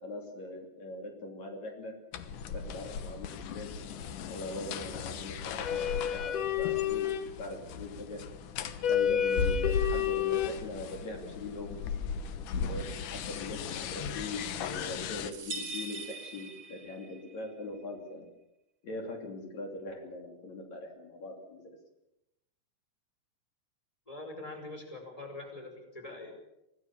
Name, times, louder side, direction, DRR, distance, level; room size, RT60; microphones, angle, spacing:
voice 1, 0.0-2.0 2.5-3.7 4.3-8.2 8.9-11.9 12.6-18.3 18.8-21.7, left 2 dB, 60° left, 2 dB, 4.2 m, -41 dB
sound 1, 2.1-15.3, left 8 dB, 80° left, 2.7 m, -33 dB
sound 2, 15.3-17.2, right 2 dB, 40° right, 1.0 m, -41 dB
voice 2, 24.1-26.3, left 2 dB, 10° left, 3 dB, 5.0 m, -43 dB
26.0 x 17.5 x 7.2 m, 0.88 s
omnidirectional pair, 3.6 m